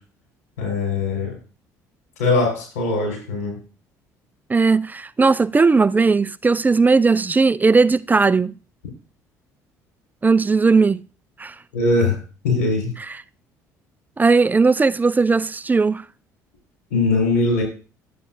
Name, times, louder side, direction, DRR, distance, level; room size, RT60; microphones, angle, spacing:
voice 1, 0.6-1.4 2.2-3.6 11.7-12.2 12.4-12.9 16.9-17.6, left 3 dB, 90° left, 4.7 m, -20 dB
voice 2, 4.5-8.6 10.2-11.0 11.4-11.6 13.0-13.2 14.2-16.0, right 4 dB, 20° right, 0.4 m, -17 dB
11.0 x 8.4 x 2.6 m
hypercardioid pair, 65°, 8 cm